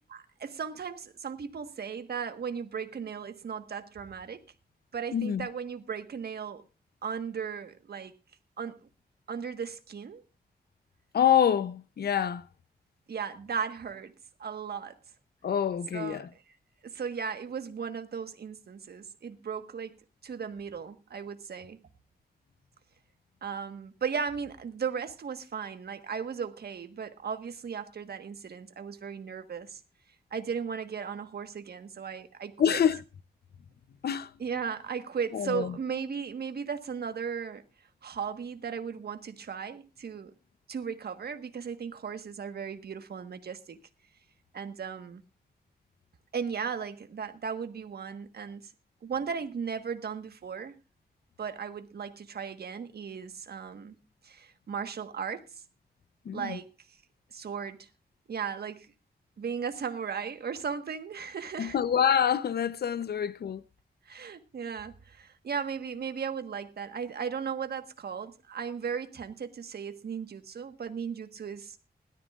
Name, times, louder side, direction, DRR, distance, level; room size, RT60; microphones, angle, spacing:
voice 1, 0.1-4.5 4.9-6.6 7.0-8.2 8.6-8.8 9.3-10.2 13.1-15.0 15.9-16.3 16.8-21.8 23.4-29.8 30.3-32.8 34.4-37.6 38.0-40.3 40.7-43.8 44.5-45.2 46.3-48.7 49.0-50.8 51.4-54.0 54.2-55.6 56.3-56.7 57.3-57.9 58.3-58.9 59.4-61.8 64.1-71.8, right 6 dB, 75° right, 1.5 m, -36 dB
voice 2, 5.1-5.5 11.1-12.4 15.4-16.3 32.6-33.0 34.0-34.3 35.3-35.8 56.2-56.6 61.6-63.6, left 8 dB, 75° left, 0.7 m, -26 dB
21.0 x 13.0 x 2.5 m
wide cardioid pair, 160°, 17 cm